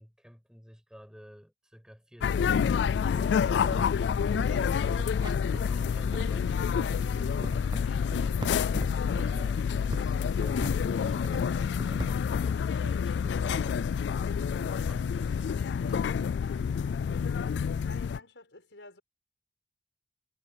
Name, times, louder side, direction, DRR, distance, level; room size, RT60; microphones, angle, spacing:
voice 1, 0.0-8.5 9.2-16.0 16.4-16.7, equal, 5° right, 6.9 m, -53 dB
sound 1, 2.2-18.2, left 6 dB, 75° left, 0.3 m, -28 dB
sound 2, 3.6-12.1, right 2 dB, 25° right, 0.6 m, -42 dB
voice 2, 17.8-19.0, left 3 dB, 90° left, 5.5 m, -50 dB
head